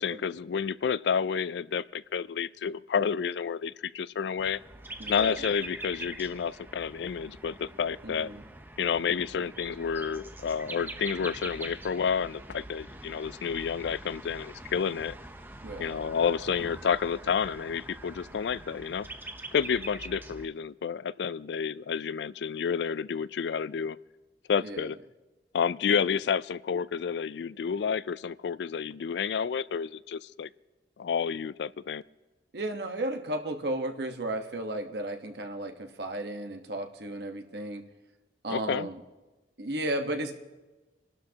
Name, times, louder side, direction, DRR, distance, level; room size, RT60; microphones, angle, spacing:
voice 1, 0.0-4.6 5.1-8.3 8.8-15.1 15.8-19.1 19.5-24.0 24.5-25.0 25.5-30.5 31.0-32.0 38.5-38.9, left 6 dB, 75° left, 18 dB, 0.4 m, -30 dB
sound 1, 4.4-20.5, right 2 dB, 10° right, 0.8 m, -44 dB
voice 2, 5.0-5.5 8.0-8.4 15.6-15.9 24.6-24.9 32.5-37.8 38.4-39.0 39.6-40.4, right 1 dB, 70° right, 4 dB, 1.2 m, -34 dB
28.5 x 12.5 x 2.9 m, 1.2 s
head